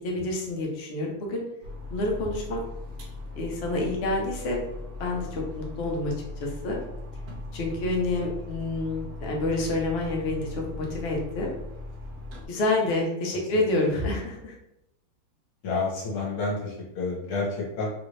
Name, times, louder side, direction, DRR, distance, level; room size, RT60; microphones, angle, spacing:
voice 1, 0.0-1.4 1.9-2.6 3.4-4.6 5.0-6.1 6.4-6.8 7.5-11.5 12.5-14.6, left 2 dB, 85° left, -1 dB, 0.5 m, -28 dB
sound 1, 1.6-12.5, left 2 dB, 65° right, 1.0 m, -39 dB
voice 2, 15.6-17.9, left 3 dB, 60° left, -3 dB, 1.4 m, -29 dB
3.2 x 2.6 x 3.1 m, 0.84 s
omnidirectional pair, 2.0 m